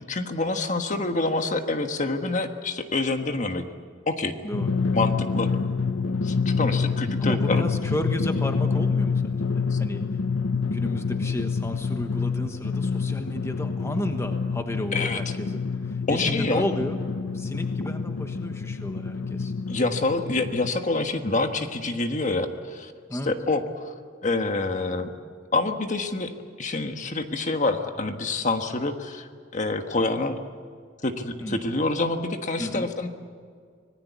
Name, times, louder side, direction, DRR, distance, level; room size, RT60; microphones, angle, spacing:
voice 1, 0.1-3.6 4.1-4.3 4.9-5.5 6.1-7.6 9.7-9.8 14.9-15.3 16.1-16.6 19.7-23.9 24.2-25.1 25.5-26.3 26.6-30.4 31.0-33.1, left 2 dB, 40° left, 6 dB, 1.5 m, -27 dB
voice 2, 4.4-4.8 7.2-10.0 10.6-15.6 15.9-17.0 17.3-19.5 23.1-23.3 31.4-31.6 32.6-32.9, equal, 15° left, 6 dB, 1.3 m, -32 dB
Drum, 4.5-20.7, left 5 dB, 85° left, 0.7 m, -27 dB
26.0 x 19.5 x 8.4 m, 2.1 s
head